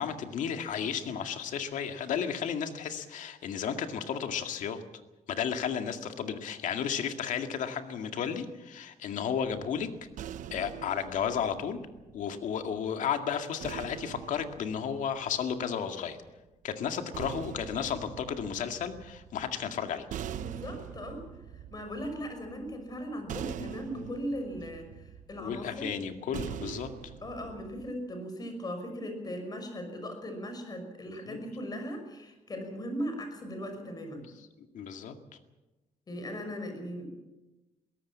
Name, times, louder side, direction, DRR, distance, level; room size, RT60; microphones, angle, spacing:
voice 1, 0.0-4.8 5.3-9.9 10.5-11.8 12.1-16.2 16.6-20.1 25.4-26.9 31.3-31.4 34.6-35.1, left 7 dB, 75° left, 6 dB, 2.1 m, -33 dB
sound 1, 9.4-12.7 13.6-15.9 16.8-27.9, right 10 dB, 70° right, 1.0 m, -44 dB
voice 2, 20.4-21.2 21.7-25.9 27.2-34.3 36.1-37.1, equal, 30° left, 6 dB, 5.8 m, -38 dB
22.5 x 17.5 x 7.4 m, 1.1 s
cardioid pair, 135°, 13 cm